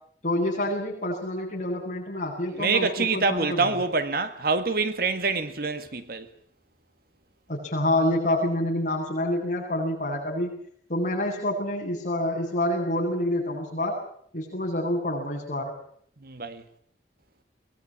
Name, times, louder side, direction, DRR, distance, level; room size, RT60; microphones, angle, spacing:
voice 1, 0.2-3.8 7.5-10.6 10.9-14.0 14.3-15.7, left 1 dB, 45° left, 7.7 m, -27 dB
voice 2, 2.5-6.3 16.2-16.6, right 4 dB, 55° right, 1.7 m, -26 dB
22.5 x 21.0 x 8.6 m
head